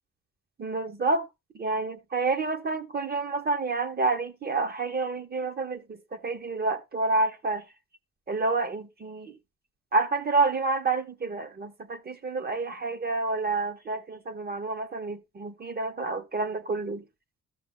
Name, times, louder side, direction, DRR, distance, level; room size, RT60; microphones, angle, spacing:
voice 1, 0.6-1.3 1.5-7.6 8.3-9.3 9.9-17.0, right 3 dB, 30° right, 1.1 m, -29 dB
13.5 x 6.9 x 2.2 m
cardioid pair, 90°, 30 cm